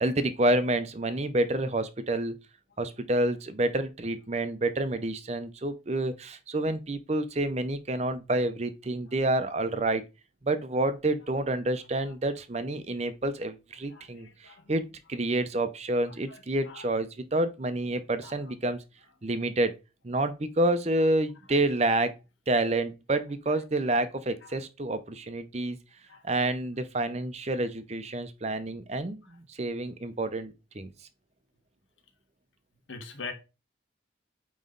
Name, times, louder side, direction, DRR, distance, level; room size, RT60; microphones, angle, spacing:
voice 1, 0.0-2.4 2.8-10.0 10.4-18.8 19.2-19.7 20.0-22.2 22.5-25.8 26.2-30.9, right 2 dB, 35° right, 0.6 m, -28 dB
voice 2, 13.9-14.7 16.1-16.9 18.2-18.3 24.4-24.6 26.1-26.2 32.9-33.3, left 4 dB, 80° left, 1.4 m, -43 dB
8.9 x 3.1 x 3.9 m
head